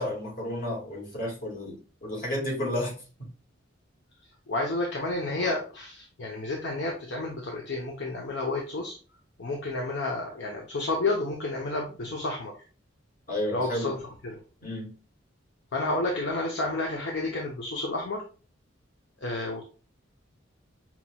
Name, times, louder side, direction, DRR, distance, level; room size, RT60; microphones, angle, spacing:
voice 1, 0.0-3.0 13.3-13.9 14.6-14.9, left 1 dB, 45° left, -3 dB, 2.0 m, -32 dB
voice 2, 4.5-9.0 9.4-12.5 13.5-14.4 15.7-18.2 19.2-19.6, left 2 dB, 65° left, 0 dB, 0.8 m, -30 dB
5.8 x 3.0 x 2.3 m, 0.36 s
head